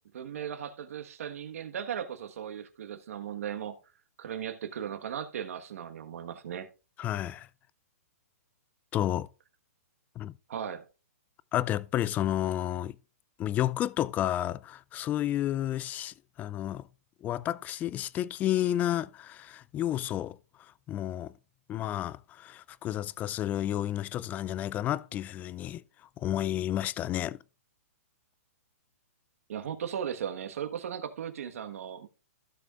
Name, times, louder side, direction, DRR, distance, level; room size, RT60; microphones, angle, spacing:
voice 1, 0.1-3.7 4.2-6.7 10.5-10.8 29.5-32.1, right 8 dB, 65° right, 1.4 m, -37 dB
voice 2, 7.0-7.5 8.9-9.3 10.2-10.3 11.5-13.0 13.4-16.9 17.2-21.3 21.7-25.8 26.2-27.4, left 12 dB, 20° left, 0.3 m, -31 dB
15.5 x 6.5 x 2.4 m
hypercardioid pair, 135°, 8 cm